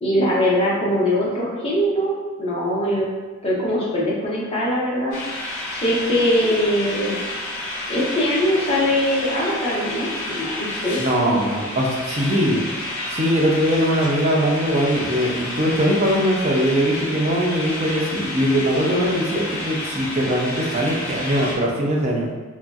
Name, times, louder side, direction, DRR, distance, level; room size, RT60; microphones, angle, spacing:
voice 1, 0.0-3.1 3.4-5.2 5.7-7.3 7.9-11.0 11.3-11.4 12.5-12.6, equal, 25° left, -6 dB, 0.6 m, -22 dB
sound 1, 5.1-21.6, left 1 dB, 80° left, 0.8 m, -30 dB
voice 2, 11.0-12.6 13.1-22.3, equal, 30° right, -1 dB, 0.4 m, -21 dB
2.9 x 2.6 x 2.3 m, 1.3 s
head